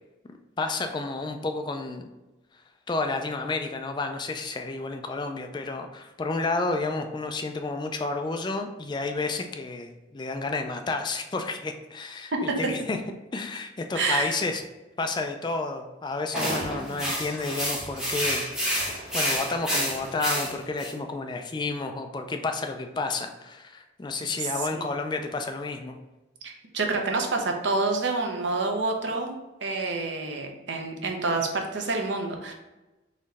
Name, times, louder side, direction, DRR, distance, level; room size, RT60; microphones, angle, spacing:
voice 1, 0.3-2.0 2.9-13.0 13.3-14.6 15.0-18.4 19.1-26.0, left 3 dB, 25° left, 5 dB, 0.3 m, -31 dB
voice 2, 13.9-14.4 16.9-17.0 24.7-24.9 26.4-32.5, right 3 dB, 70° right, 3 dB, 0.7 m, -28 dB
sound 1, 16.3-20.9, equal, 5° right, 1.0 m, -29 dB
4.2 x 3.1 x 4.0 m, 1.1 s
head